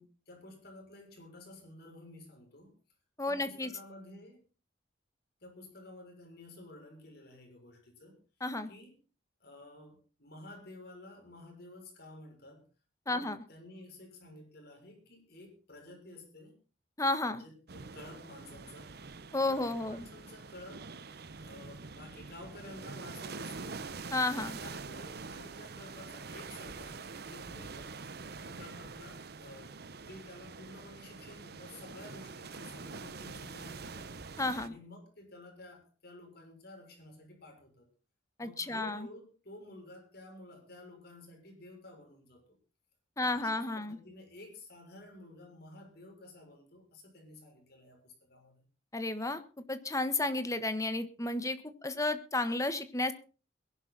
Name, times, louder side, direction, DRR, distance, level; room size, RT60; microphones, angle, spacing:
voice 1, 0.0-2.8 3.3-4.4 5.4-8.2 8.7-9.0 9.4-12.6 13.1-16.6 17.2-18.9 19.5-20.9 21.4-23.8 24.3-28.0 28.4-34.2 34.6-37.9 38.4-42.6 43.2-48.7, left 2 dB, 60° left, 2 dB, 6.5 m, -52 dB
voice 2, 3.2-3.7 8.4-8.7 13.1-13.4 17.0-17.4 19.3-20.0 24.1-24.6 34.4-34.7 38.4-39.1 43.2-44.0 48.9-49.4 49.7-53.1, left 2 dB, 20° left, 10 dB, 1.4 m, -32 dB
sound 1, 17.7-34.7, right 4 dB, 60° right, 0.9 m, -45 dB
21.5 x 11.5 x 4.1 m, 0.36 s
head